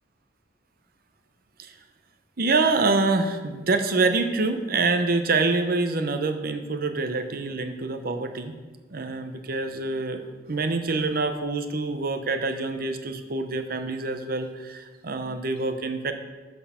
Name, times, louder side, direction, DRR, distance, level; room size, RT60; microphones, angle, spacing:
voice 1, 2.4-8.5 8.9-16.1, right 3 dB, 50° right, 7 dB, 0.8 m, -26 dB
11.5 x 4.5 x 5.7 m, 1.3 s
head